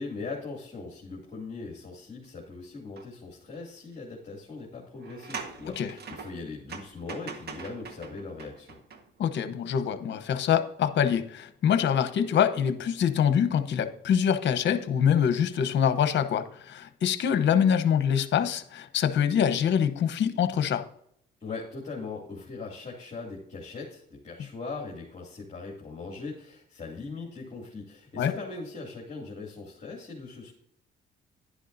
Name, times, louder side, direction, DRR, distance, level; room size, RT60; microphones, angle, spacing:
voice 1, 0.0-8.8 21.4-30.5, left 3 dB, 35° left, -2 dB, 2.5 m, -40 dB
sound 1, 3.0-3.1 3.5-3.6 4.9-9.5 9.9-10.0, right 5 dB, 55° right, 1.4 m, -43 dB
voice 2, 9.2-20.8 28.2-28.3, left 8 dB, 65° left, 10 dB, 0.9 m, -25 dB
11.0 x 10.0 x 2.7 m, 0.71 s
cardioid pair, 90°, 20 cm